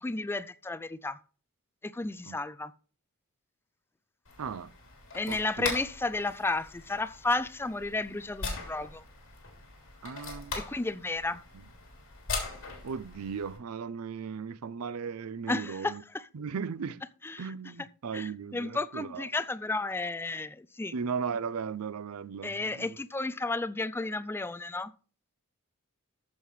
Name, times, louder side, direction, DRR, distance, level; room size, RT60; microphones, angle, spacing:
voice 1, 0.0-1.2 1.8-2.7 5.1-9.0 10.5-11.4 15.5-16.3 17.2-17.5 17.8-17.9 18.1-20.9 22.4-24.9, left 2 dB, 10° left, 0.3 m, -33 dB
sound 1, 4.2-13.6, left 4 dB, 60° left, 3.2 m, -41 dB
voice 2, 4.4-4.7 5.3-5.7 10.0-10.5 12.8-16.0 16.3-17.0 17.4-19.2 20.9-23.0, right 6 dB, 80° right, 0.5 m, -36 dB
14.0 x 5.6 x 3.2 m
head